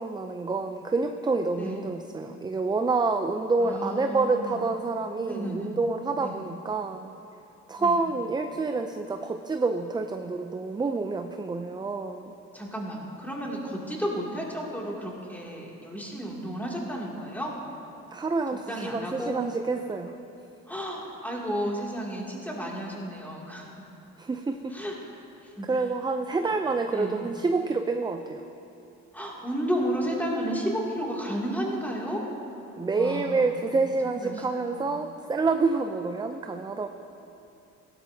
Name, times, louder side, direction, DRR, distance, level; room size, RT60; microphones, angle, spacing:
voice 1, 0.0-7.1 7.7-12.3 18.1-20.2 24.2-24.8 25.6-28.4 32.8-36.9, right 3 dB, 15° right, 6 dB, 0.4 m, -28 dB
voice 2, 1.6-1.9 3.6-4.7 5.3-5.8 6.2-6.4 7.8-8.0 12.5-17.5 18.5-19.4 20.7-23.7 24.7-24.9 25.4-25.7 26.9-27.3 29.1-32.2 32.9-35.0, equal, 5° left, -3 dB, 2.5 m, -33 dB
16.0 x 12.0 x 2.8 m, 2.9 s
cardioid pair, 90°, 30 cm